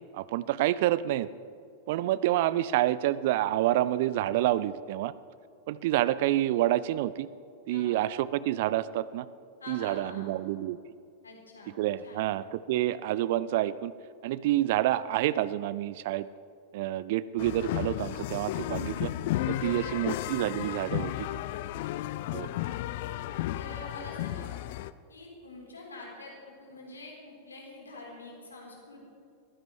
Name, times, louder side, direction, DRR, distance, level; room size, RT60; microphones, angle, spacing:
voice 1, 0.1-1.3 1.9-5.1 5.7-7.3 7.7-9.3 9.7-10.8 11.8-13.9 14.2-16.3 16.7-19.1 19.5-21.3 22.3-22.5, right 14 dB, 50° right, 18 dB, 0.5 m, -28 dB
voice 2, 7.7-8.0 9.6-10.3 11.2-11.7 12.0-12.3 18.7-19.0 19.7-20.1 22.3-22.5 23.5-24.5 25.1-29.1, left 2 dB, 75° left, -1 dB, 4.0 m, -46 dB
sound 1, 17.4-24.9, left 14 dB, 50° left, 0.4 m, -33 dB
22.5 x 15.5 x 3.3 m, 2.5 s
figure-of-eight pair, 90°, 0 cm